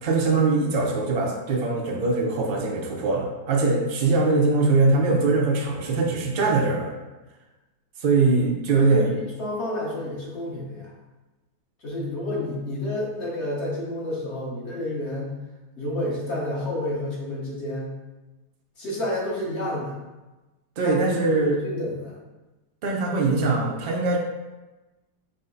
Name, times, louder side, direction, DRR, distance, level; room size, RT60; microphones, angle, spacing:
voice 1, 0.0-6.9 8.0-9.2 20.8-21.6 22.8-24.2, right 3 dB, 65° right, -1 dB, 0.5 m, -22 dB
voice 2, 8.8-10.9 11.8-15.3 15.8-17.9 18.8-19.9 20.8-22.2, left 1 dB, 45° left, -5 dB, 1.3 m, -30 dB
5.2 x 2.1 x 3.8 m, 1.1 s
omnidirectional pair, 1.8 m